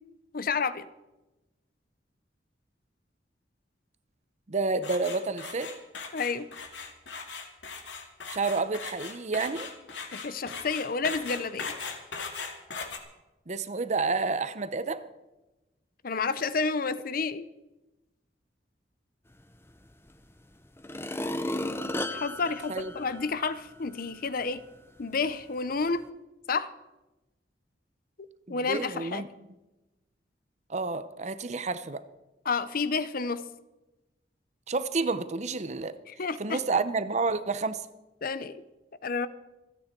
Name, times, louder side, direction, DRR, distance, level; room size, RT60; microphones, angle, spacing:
voice 1, 0.3-0.9 6.1-6.5 10.1-11.7 16.0-17.5 22.1-24.6 25.0-26.1 26.5-26.7 28.2-29.2 32.5-33.4 36.1-36.6 38.2-38.6 39.0-39.3, left 4 dB, 50° left, 15 dB, 0.7 m, -30 dB
voice 2, 4.5-5.7 8.3-9.7 13.5-15.0 22.7-22.9 28.5-29.3 30.7-32.0 34.7-35.9 36.4-37.8, right 3 dB, 40° right, 13 dB, 0.8 m, -29 dB
sound 1, 4.8-13.0, left 5 dB, 85° left, 2.1 m, -39 dB
sound 2, 20.1-20.2 20.8-23.6 24.1-24.2, left 1 dB, 15° left, 0.8 m, -34 dB
27.0 x 9.4 x 4.5 m, 1.0 s
head